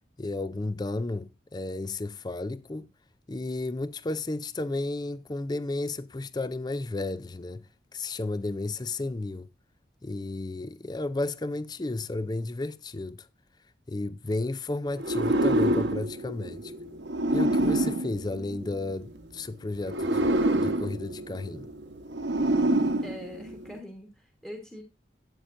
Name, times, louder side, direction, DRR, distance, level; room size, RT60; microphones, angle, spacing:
voice 1, 0.2-2.9 3.3-7.6 7.9-9.5 10.0-13.3 13.9-16.7 17.3-21.7, left 2 dB, 20° left, 0.4 m, -33 dB
sound 1, 15.0-19.1 19.8-23.8, right 1 dB, 80° right, 1.2 m, -27 dB
voice 2, 23.0-24.8, equal, 5° left, 1.3 m, -43 dB
12.5 x 8.8 x 2.6 m
head